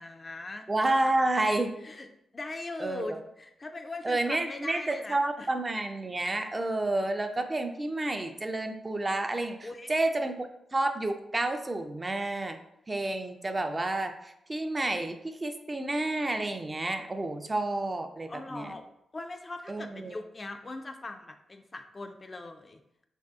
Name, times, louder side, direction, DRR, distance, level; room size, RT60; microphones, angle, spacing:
voice 1, 0.0-0.7 1.8-2.1 2.3-5.5 9.6-9.9 18.3-18.8 19.1-22.8, left 2 dB, 40° left, 6 dB, 0.3 m, -40 dB
voice 2, 0.7-1.7 2.8-3.2 4.0-12.6 12.9-18.7 19.7-20.2, right 2 dB, 30° right, 6 dB, 0.4 m, -30 dB
3.2 x 2.6 x 2.4 m, 0.79 s
supercardioid pair, 40°, 0 cm